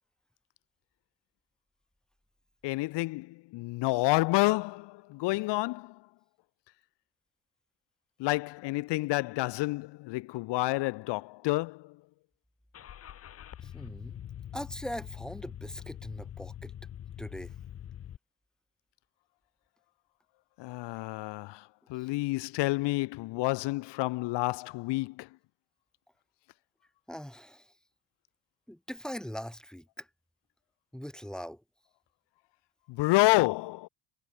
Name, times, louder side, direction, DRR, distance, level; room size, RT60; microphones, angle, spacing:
voice 1, 2.6-6.0 8.2-12.0 20.6-21.6 21.9-25.3 32.9-33.9, left 21 dB, 60° left, 0.8 m, -29 dB
Car / Engine starting, 12.7-18.2, left 10 dB, 30° left, 0.9 m, -44 dB
voice 2, 13.6-14.2 14.5-16.7 17.2-17.5 27.1-27.7 28.7-30.1 30.9-31.6, equal, ahead, 1.3 m, -41 dB
cardioid pair, 155°, 47 cm